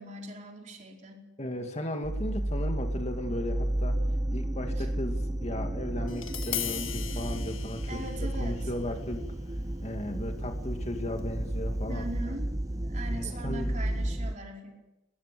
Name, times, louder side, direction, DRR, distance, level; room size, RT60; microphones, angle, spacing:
voice 1, 0.0-1.3 4.8-4.9 7.9-8.6 11.9-12.5 12.8-14.8, right 1 dB, 40° right, 0 dB, 4.7 m, -40 dB
voice 2, 1.4-4.0 4.3-8.1 8.4-9.3 9.8-12.3 13.1-13.8, left 1 dB, 35° left, 4 dB, 2.3 m, -36 dB
sound 1, 2.0-14.3, right 1 dB, 15° right, 0.7 m, -32 dB
Tap, 6.1-12.2, left 10 dB, 90° left, 1.7 m, -41 dB
23.0 x 20.5 x 7.0 m, 0.99 s
head